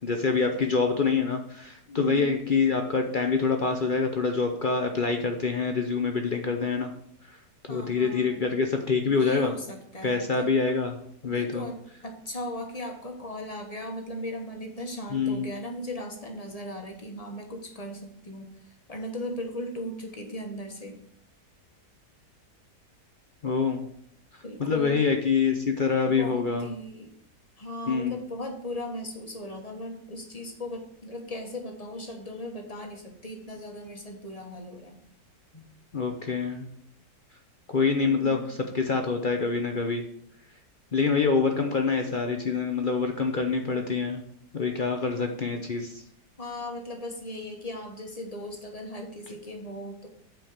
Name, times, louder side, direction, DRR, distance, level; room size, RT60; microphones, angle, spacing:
voice 1, 0.0-6.9 7.3-7.4 7.7-9.5 10.0-11.0 11.2-11.7 15.1-15.5 23.4-23.9 24.6-26.7 27.9-28.2 35.9-36.7 37.7-40.0 40.9-44.2 44.5-46.0, left 5 dB, 50° left, 4 dB, 0.6 m, -26 dB
voice 2, 1.9-2.3 7.7-8.4 9.0-10.5 11.2-11.8 12.0-18.5 18.9-21.0 24.4-25.0 26.0-27.1 27.6-35.0 35.5-35.6 37.9-38.5 46.4-50.1, left 1 dB, 25° left, 2 dB, 1.2 m, -37 dB
8.2 x 4.7 x 6.5 m, 0.68 s
omnidirectional pair, 1.8 m